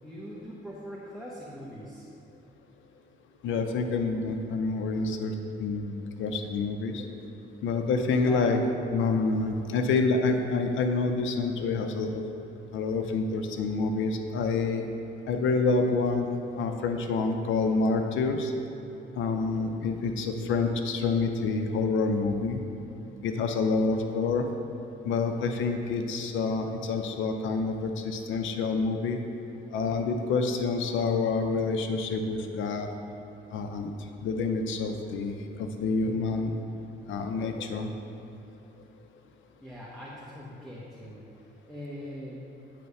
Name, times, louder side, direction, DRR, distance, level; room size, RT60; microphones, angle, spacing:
voice 1, 0.0-2.1 8.2-8.5 39.6-42.4, equal, ahead, -7 dB, 1.0 m, -42 dB
voice 2, 3.4-7.0 7.6-8.6 8.9-12.2 12.7-14.9 15.3-18.5 19.2-22.6 23.2-24.5 25.1-29.2 29.7-32.9 33.5-33.9 34.2-36.5 37.1-37.9, left 4 dB, 75° left, 5 dB, 0.6 m, -27 dB
8.3 x 3.2 x 5.4 m, 2.8 s
cardioid pair, 90°, 20 cm